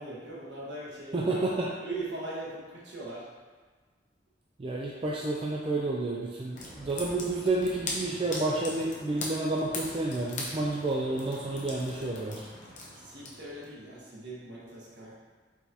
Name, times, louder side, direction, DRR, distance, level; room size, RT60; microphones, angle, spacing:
voice 1, 0.0-1.5 1.8-3.3 12.9-15.1, right 2 dB, 65° right, -6 dB, 1.3 m, -40 dB
voice 2, 1.1-1.7 4.6-12.5, right 2 dB, 30° right, -3 dB, 0.4 m, -30 dB
sound 1, 6.5-13.7, left 2 dB, 45° left, 0.8 m, -40 dB
4.8 x 4.0 x 2.7 m, 1.4 s
head